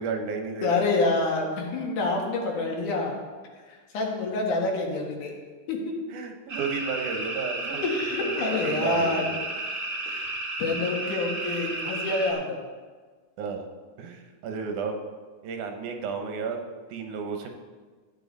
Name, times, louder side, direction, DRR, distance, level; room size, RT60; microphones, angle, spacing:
voice 1, 0.0-0.8 6.1-7.9 8.2-9.4 11.0-11.2 13.4-13.7 14.0-15.0 15.4-16.6 16.9-17.5, right 5 dB, 85° right, 4 dB, 2.6 m, -33 dB
voice 2, 0.6-3.2 3.9-5.3 5.7-5.9 7.8-9.3 10.1-10.3 10.6-12.6, left 3 dB, 85° left, 0 dB, 3.2 m, -27 dB
sound 1, 6.5-12.3, right 2 dB, 65° right, 0.5 m, -33 dB
14.0 x 8.8 x 4.1 m, 1.4 s
omnidirectional pair, 3.5 m